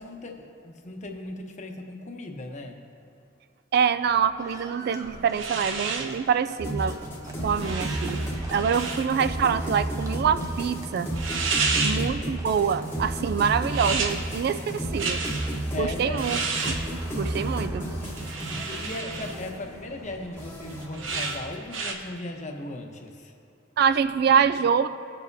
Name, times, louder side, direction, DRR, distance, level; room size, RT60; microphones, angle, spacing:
voice 1, 0.0-2.8 8.8-8.9 11.4-12.3 15.7-16.3 18.5-23.4, left 1 dB, 40° left, 3 dB, 0.9 m, -37 dB
voice 2, 3.7-7.0 7.4-8.2 8.5-11.1 11.8-15.2 15.7-16.4 16.6-16.7 17.1-17.9 23.8-24.9, right 7 dB, 55° right, 12 dB, 0.3 m, -25 dB
Livestock farm animals working animals, 4.4-21.2, right 2 dB, 15° right, 0.7 m, -48 dB
sound 1, 5.0-21.9, right 4 dB, 80° right, 0.9 m, -33 dB
sound 2, 6.6-21.6, right 1 dB, 10° left, 1.0 m, -33 dB
18.0 x 7.1 x 2.7 m, 2.6 s
head